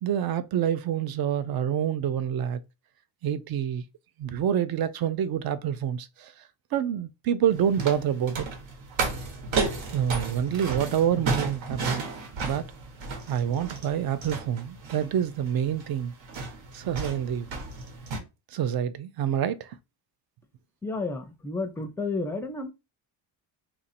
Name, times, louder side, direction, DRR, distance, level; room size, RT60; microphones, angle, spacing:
voice 1, 0.0-2.6 3.2-3.8 4.2-6.3 6.7-8.5 9.9-12.0 12.4-12.7 13.3-16.1 16.7-17.5 18.5-19.8, right 9 dB, 55° right, 0.5 m, -27 dB
sound 1, 7.5-18.2, right 4 dB, 85° right, 1.2 m, -33 dB
voice 2, 20.8-22.7, left 3 dB, 5° left, 0.4 m, -31 dB
3.0 x 2.6 x 4.2 m
cardioid pair, 130°, 44 cm